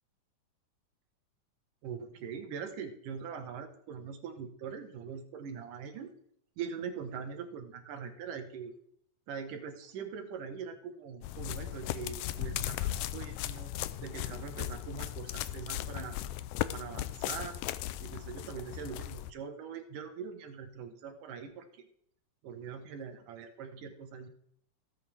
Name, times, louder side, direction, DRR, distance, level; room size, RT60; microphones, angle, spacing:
voice 1, 1.8-6.1 6.6-8.8 9.3-13.7 14.0-16.2 16.7-17.6 18.0-21.9 22.4-24.3, right 6 dB, 90° right, 6 dB, 3.1 m, -42 dB
sound 1, 11.2-19.3, left 13 dB, 85° left, 2.1 m, -37 dB
18.0 x 8.2 x 3.6 m, 0.66 s
omnidirectional pair, 3.6 m